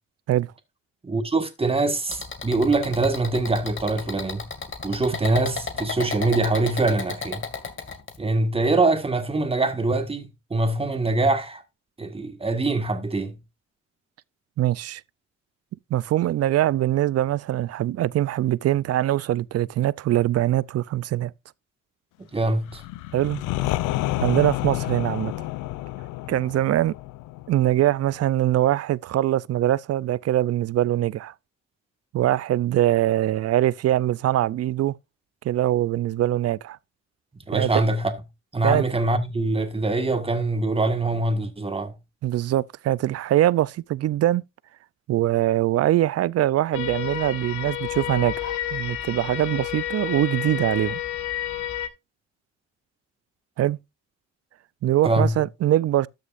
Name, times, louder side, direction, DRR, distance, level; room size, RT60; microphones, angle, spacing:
voice 1, 1.0-4.5 4.8-7.4 8.2-11.6 12.0-13.3 22.3-22.8 37.5-38.1 38.5-41.9 55.0-55.4, right 2 dB, 20° right, 1.7 m, -23 dB
sound 1, 2.1-8.2, left 5 dB, 40° left, 2.2 m, -33 dB
voice 2, 14.6-15.0 15.9-21.3 23.1-23.4 24.2-25.3 26.3-27.0 27.5-31.3 32.1-34.9 35.4-36.8 37.5-37.7 38.6-38.8 42.2-44.4 45.1-51.0 53.6-53.8 54.8-56.1, right 13 dB, 55° right, 0.4 m, -22 dB
sound 2, 22.7-28.4, left 17 dB, 90° left, 0.5 m, -30 dB
sound 3, 46.7-51.9, left 12 dB, 70° left, 1.7 m, -30 dB
13.0 x 6.6 x 2.5 m
cardioid pair, 90°, 30 cm